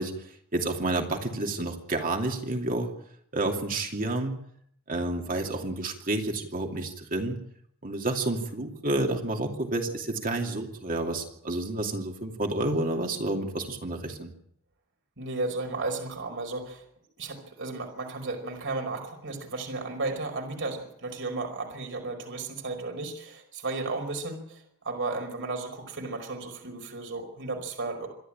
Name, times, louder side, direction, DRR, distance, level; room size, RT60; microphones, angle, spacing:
voice 1, 0.0-2.9 3.3-4.3 4.9-7.4 7.8-14.3, right 2 dB, 40° right, 3 dB, 2.7 m, -30 dB
voice 2, 15.2-16.8 17.2-28.1, right 3 dB, 60° right, 3 dB, 5.1 m, -34 dB
26.5 x 11.5 x 8.9 m, 0.70 s
head